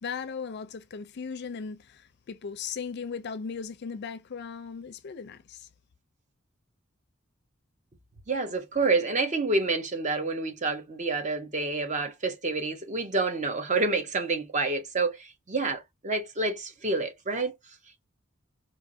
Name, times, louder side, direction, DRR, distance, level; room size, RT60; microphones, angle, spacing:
voice 1, 0.0-5.7, left 6 dB, 55° left, 0.5 m, -37 dB
voice 2, 8.3-17.5, right 3 dB, 35° right, 1.0 m, -28 dB
4.6 x 2.7 x 2.6 m
head